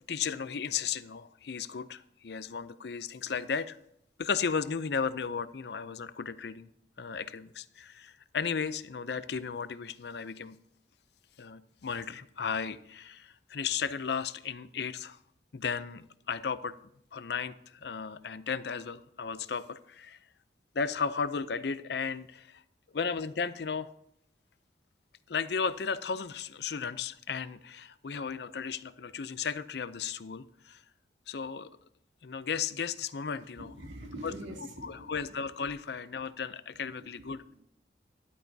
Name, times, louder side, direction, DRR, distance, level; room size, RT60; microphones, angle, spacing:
voice 1, 0.1-3.8 4.2-6.7 7.0-10.6 11.4-15.2 15.5-16.8 17.1-20.2 20.7-22.6 22.9-23.9 25.3-30.8 31.3-31.7 32.2-33.7 34.2-34.3 34.8-37.4, left 6 dB, 65° left, 14 dB, 0.5 m, -35 dB
voice 2, 33.6-35.2 37.0-37.6, right 1 dB, 90° right, 1 dB, 1.9 m, -44 dB
13.5 x 11.5 x 2.8 m, 0.74 s
head